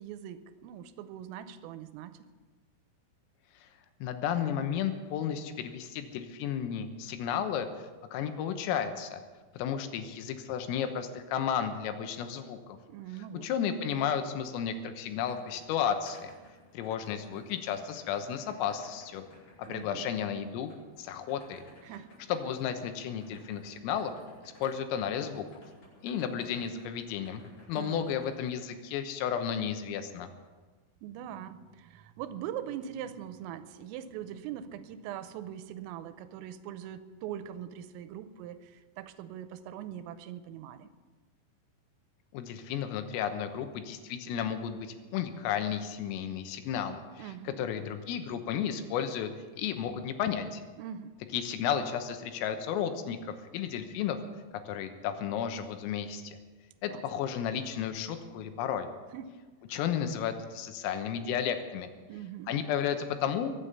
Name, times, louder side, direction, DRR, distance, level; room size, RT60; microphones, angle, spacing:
voice 1, 0.0-2.2 12.8-13.5 19.7-20.1 21.8-22.1 27.7-28.1 31.0-40.9 47.2-47.7 50.8-51.2 56.9-57.0 59.1-59.3 62.1-62.6, right 10 dB, 85° right, 12 dB, 3.3 m, -42 dB
voice 2, 4.0-7.7 8.1-9.2 9.6-12.6 13.4-16.3 16.7-19.2 19.6-20.7 21.0-21.6 22.3-24.1 24.6-25.5 26.0-27.4 27.7-30.3 42.3-49.3 49.6-50.6 51.3-54.2 54.7-56.4 56.8-58.9 59.7-61.9 62.5-63.5, left 8 dB, 85° left, 8 dB, 3.7 m, -33 dB
sound 1, 14.7-28.6, left 1 dB, 40° left, 8.1 m, -57 dB
23.0 x 8.4 x 6.8 m, 1.4 s
omnidirectional pair, 5.9 m